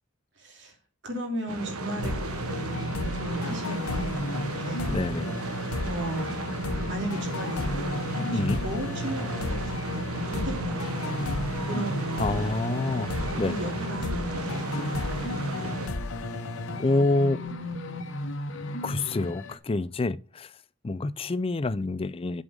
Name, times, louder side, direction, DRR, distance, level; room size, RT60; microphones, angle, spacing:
voice 1, 0.4-0.7 1.0-4.3 4.6-4.8 5.8-6.4 6.9-10.8 11.7-12.6 13.4-15.0, right 1 dB, 50° right, 2.9 m, -36 dB
sound 1, 1.5-15.9, right 2 dB, 80° right, 1.2 m, -34 dB
sound 2, 2.0-17.5, left 2 dB, 80° left, 1.0 m, -35 dB
sound 3, 2.7-19.6, left 1 dB, 55° left, 1.2 m, -36 dB
voice 2, 4.9-5.3 8.3-8.6 12.2-13.1 13.4-13.5 16.8-17.4 18.8-20.5 20.8-22.4, left 2 dB, 25° left, 0.4 m, -27 dB
7.9 x 5.5 x 6.6 m
head